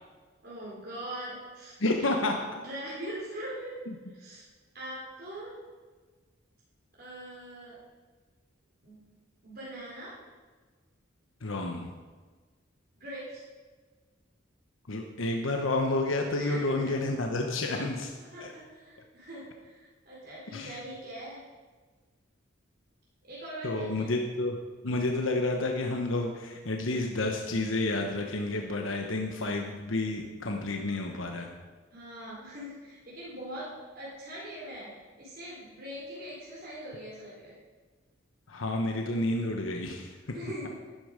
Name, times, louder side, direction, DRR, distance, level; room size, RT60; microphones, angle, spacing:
voice 1, 0.4-1.7 2.0-2.1 2.5-3.8 4.1-4.4 4.7-5.6 7.0-7.8 8.8-9.1 9.4-10.2 13.0-13.5 16.4-17.0 17.7-17.9 18.3-21.4 23.2-24.1 31.9-37.6 40.3-40.9, right 1 dB, 50° right, -6 dB, 4.0 m, -42 dB
voice 2, 1.8-2.3 3.9-4.0 11.4-11.9 14.9-18.1 18.4-18.5 20.5-20.8 23.6-24.6 24.8-31.5 38.5-40.3, left 2 dB, 85° left, 2 dB, 1.1 m, -30 dB
12.0 x 11.5 x 5.2 m, 1.4 s
head